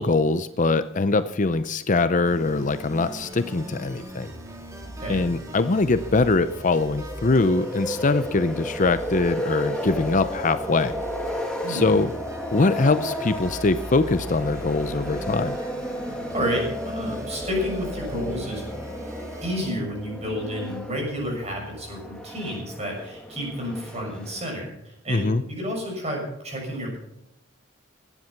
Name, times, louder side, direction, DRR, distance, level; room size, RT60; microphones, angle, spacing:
voice 1, 0.0-4.3 5.1-11.0 11.7-12.1 12.5-15.6 25.1-25.4, left 3 dB, 40° left, 12 dB, 0.6 m, -22 dB
sound 1, 2.2-19.6, equal, 15° right, 2.6 m, -39 dB
voice 2, 5.0-5.3 11.6-11.9 16.3-18.6 19.4-27.0, equal, 30° right, 0 dB, 6.9 m, -30 dB
sound 2, 5.6-24.7, equal, 5° left, 1.6 m, -34 dB
17.0 x 11.0 x 5.8 m, 0.82 s
head